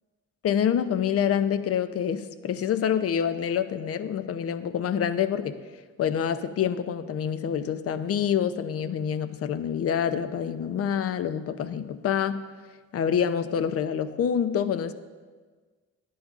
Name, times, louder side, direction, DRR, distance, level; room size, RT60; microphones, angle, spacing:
voice 1, 0.4-5.5 6.0-12.4 12.9-14.9, left 8 dB, 50° left, 12 dB, 0.5 m, -26 dB
10.0 x 9.4 x 2.4 m, 1.5 s
cardioid pair, 90°, 30 cm